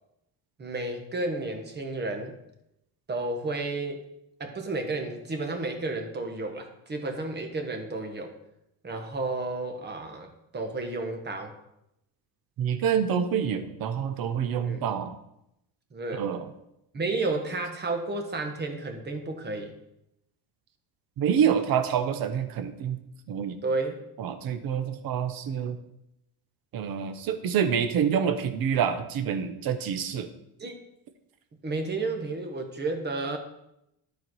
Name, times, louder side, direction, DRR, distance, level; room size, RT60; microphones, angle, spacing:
voice 1, 0.6-2.3 3.1-4.1 4.4-8.3 8.8-11.5 14.6-14.9 15.9-16.2 16.9-19.8 23.6-24.0 30.6-30.8 31.6-33.4, right 2 dB, 25° right, 4 dB, 1.3 m, -32 dB
voice 2, 12.6-15.1 16.1-16.5 21.2-23.0 23.3-23.6 24.2-25.8 26.7-30.3, right 8 dB, 55° right, 8 dB, 0.9 m, -27 dB
12.0 x 4.7 x 4.7 m, 0.83 s
cardioid pair, 145°, 42 cm